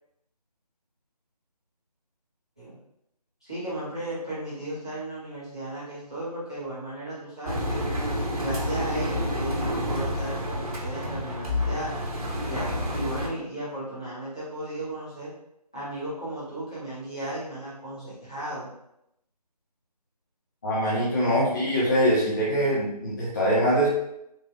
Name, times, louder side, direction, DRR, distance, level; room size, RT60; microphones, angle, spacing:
voice 1, 3.4-7.8 8.4-11.9 12.4-15.3 15.7-18.7 21.2-21.4, right 1 dB, 10° left, -13 dB, 0.5 m, -35 dB
Engine, 7.5-13.3, left 1 dB, 60° right, 1.0 m, -29 dB
voice 2, 20.6-23.9, equal, 30° left, -7 dB, 0.9 m, -23 dB
3.8 x 3.3 x 2.4 m, 0.80 s
figure-of-eight pair, 160°, 21 cm